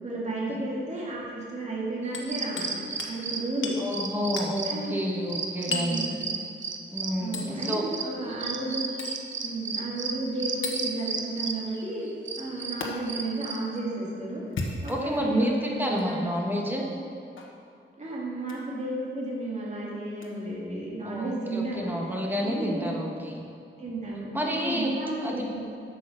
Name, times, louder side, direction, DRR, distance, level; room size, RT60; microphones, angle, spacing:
voice 1, 0.0-2.8 3.1-3.7 4.6-5.0 5.7-6.3 7.2-8.9 9.4-12.1 12.4-14.4 14.8-16.3 18.0-22.0 22.4-23.0 23.8-25.6, right 2 dB, 35° right, -5 dB, 2.2 m, -33 dB
Hammer, 2.1-2.7 3.0-3.2 3.6-3.8 4.4-4.5 5.7-6.0 7.3-7.5 9.0-9.2 10.6-10.8 12.8-12.9 14.4-15.2 15.9-16.1 17.4-17.6 18.4-18.6 20.2-20.3, left 3 dB, 75° left, 1.1 m, -34 dB
sound 1, 2.1-13.8, right 5 dB, 65° right, 0.8 m, -34 dB
voice 2, 3.8-6.0 6.9-7.8 14.9-15.5 15.8-16.8 21.0-23.4 24.3-24.9 25.2-25.5, equal, 10° right, -1 dB, 1.3 m, -29 dB
7.9 x 6.7 x 6.4 m, 2.5 s
wide cardioid pair, 150°, 21 cm